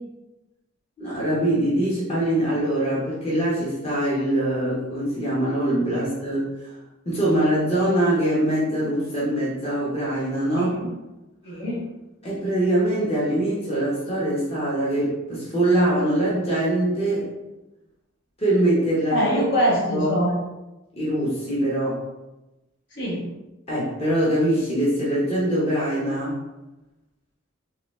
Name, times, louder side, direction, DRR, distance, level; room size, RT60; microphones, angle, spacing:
voice 1, 1.0-6.5 7.0-10.7 12.2-17.3 18.4-19.2 19.9-20.1 20.9-22.0 23.7-26.4, right 1 dB, 30° left, -7 dB, 1.1 m, -23 dB
voice 2, 10.6-10.9 11.4-11.8 19.1-20.3 22.9-23.3, equal, 60° left, -5 dB, 1.3 m, -23 dB
3.8 x 3.5 x 3.2 m, 1.0 s
head